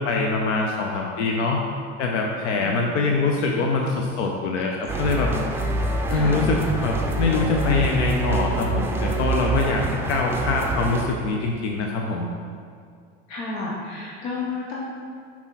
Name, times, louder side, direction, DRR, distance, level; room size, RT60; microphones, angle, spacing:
voice 1, 0.0-1.6 2.0-5.3 6.1-12.3, left 3 dB, 80° left, 1 dB, 0.8 m, -24 dB
voice 2, 2.6-3.1 6.1-6.5 13.3-14.9, left 3 dB, 65° left, -4 dB, 1.2 m, -32 dB
sound 1, 4.9-11.1, right 2 dB, 5° right, 0.7 m, -26 dB
6.0 x 5.9 x 4.1 m, 2.2 s
supercardioid pair, 100°, 35 cm